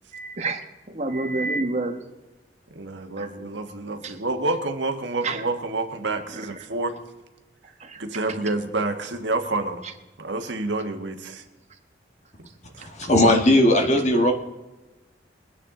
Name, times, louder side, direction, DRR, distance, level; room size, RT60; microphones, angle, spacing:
voice 1, 0.1-2.0 3.2-3.3 4.0-4.1 5.2-5.4 6.3-6.6 7.8-8.0 8.3-8.4 13.0-13.1, right 2 dB, 40° right, 5 dB, 1.4 m, -29 dB
voice 2, 2.7-7.0 8.0-9.8 10.2-11.4 12.7-12.9, right 2 dB, 85° right, 6 dB, 1.4 m, -28 dB
voice 3, 12.8-14.3, left 1 dB, 40° left, 4 dB, 1.6 m, -18 dB
22.5 x 10.0 x 3.8 m, 1.1 s
head